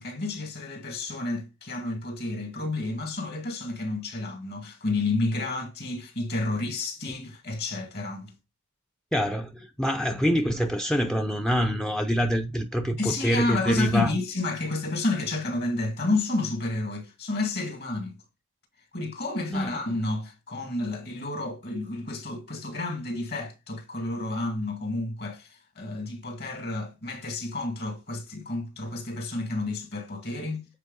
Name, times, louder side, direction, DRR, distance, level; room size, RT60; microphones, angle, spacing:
voice 1, 0.0-8.3 13.0-18.2 18.9-30.7, left 2 dB, 45° left, 2.1 m, -30 dB
voice 2, 9.1-14.1 19.5-19.7, equal, 5° left, 0.6 m, -25 dB
8.2 x 4.6 x 3.9 m
head